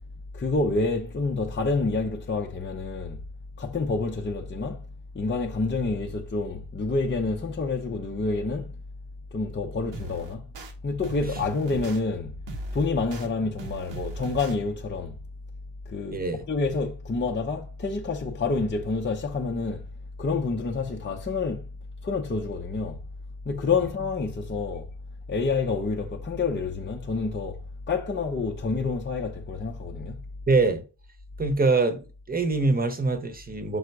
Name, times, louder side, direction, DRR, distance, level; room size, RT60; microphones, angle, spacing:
voice 1, 0.3-3.2 3.6-4.9 5.1-8.7 9.3-10.5 10.8-12.3 12.7-15.2 15.9-19.9 20.2-21.7 22.0-23.0 23.5-24.9 25.3-27.6 27.9-30.2, left 3 dB, 25° left, 0.7 m, -28 dB
sound 1, 9.9-10.7 11.0-12.0 12.5-13.3 13.6-14.5, right 5 dB, 85° right, 1.2 m, -38 dB
voice 2, 30.5-30.8 31.4-32.0 32.3-33.8, right 3 dB, 20° right, 1.0 m, -23 dB
5.5 x 3.7 x 4.7 m
wide cardioid pair, 135°, 42 cm